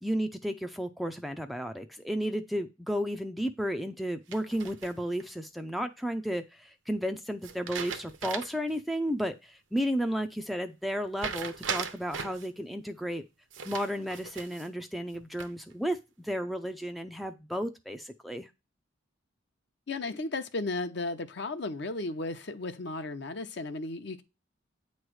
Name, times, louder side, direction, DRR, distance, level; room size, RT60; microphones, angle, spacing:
voice 1, 0.0-13.2 13.6-18.5, equal, ahead, 0.4 m, -33 dB
sound 1, 4.3-5.2 7.4-8.7 9.1-9.2 11.2-12.5 13.5-14.7 15.1-15.7, right 6 dB, 75° right, 0.8 m, -38 dB
voice 2, 19.9-24.2, left 2 dB, 60° left, 0.7 m, -34 dB
8.7 x 3.2 x 6.2 m
head